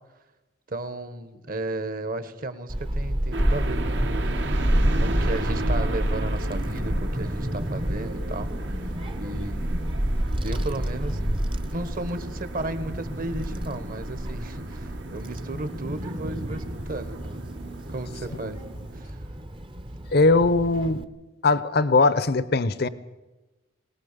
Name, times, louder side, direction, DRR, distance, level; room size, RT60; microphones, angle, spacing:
voice 1, 0.7-4.4 5.0-9.7 10.4-11.4 11.7-17.4 17.9-18.6 18.9-19.2, right 2 dB, 45° right, 11 dB, 1.4 m, -34 dB
Child speech kid speaking / Wind, 2.7-21.0, equal, 25° right, 0.8 m, -29 dB
sound 1, 3.3-19.0, right 3 dB, 65° right, 1.3 m, -38 dB
voice 2, 20.1-21.0 21.4-22.9, left 3 dB, 55° left, 16 dB, 0.8 m, -20 dB
21.5 x 19.0 x 6.8 m, 1.1 s
head